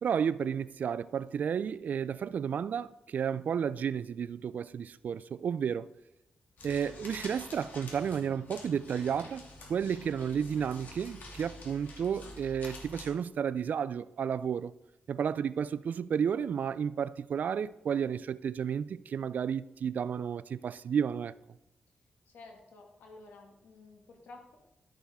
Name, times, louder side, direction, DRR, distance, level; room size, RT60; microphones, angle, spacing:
voice 1, 0.0-5.9 6.6-14.7 15.1-21.3, right 7 dB, 65° right, 0.3 m, -32 dB
sound 1, 6.6-13.1, left 2 dB, 70° left, 2.4 m, -48 dB
voice 2, 22.3-24.6, left 3 dB, 90° left, 1.9 m, -52 dB
12.0 x 7.2 x 3.6 m
cardioid pair, 80°, 3 cm